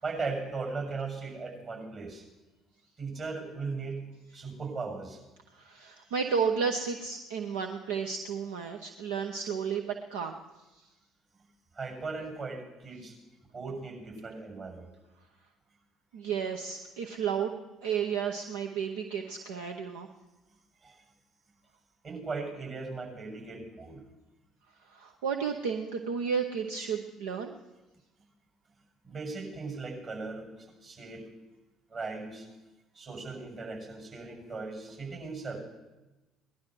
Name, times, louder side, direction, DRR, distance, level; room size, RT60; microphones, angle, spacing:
voice 1, 0.0-2.2 3.0-5.2 11.7-13.1 13.5-14.9 20.8-21.0 22.0-24.0 29.0-31.3 31.9-32.5 32.9-35.6, right 4 dB, 40° right, 0 dB, 6.7 m, -38 dB
voice 2, 5.5-10.4 16.1-17.6 17.8-20.1 24.9-27.6, right 6 dB, 70° right, 4 dB, 0.9 m, -32 dB
19.5 x 12.0 x 6.2 m, 1.1 s
figure-of-eight pair, 50°, 0 cm